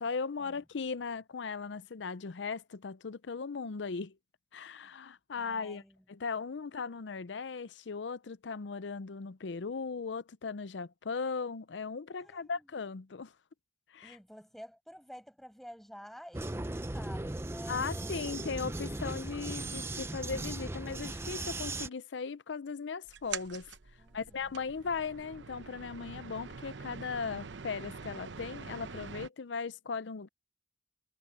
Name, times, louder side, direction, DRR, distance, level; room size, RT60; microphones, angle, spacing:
voice 1, 0.0-4.2 4.5-5.8 6.1-13.3 13.9-14.2 17.7-23.7 24.1-30.3, left 5 dB, 85° left, 0.6 m, -38 dB
voice 2, 5.3-6.1 12.2-12.7 14.0-18.6 24.0-24.7, equal, ahead, 6.0 m, -51 dB
Vehicle, 16.3-21.9, right 2 dB, 15° right, 0.6 m, -38 dB
sound 1, 23.1-29.3, right 5 dB, 85° right, 0.8 m, -45 dB
head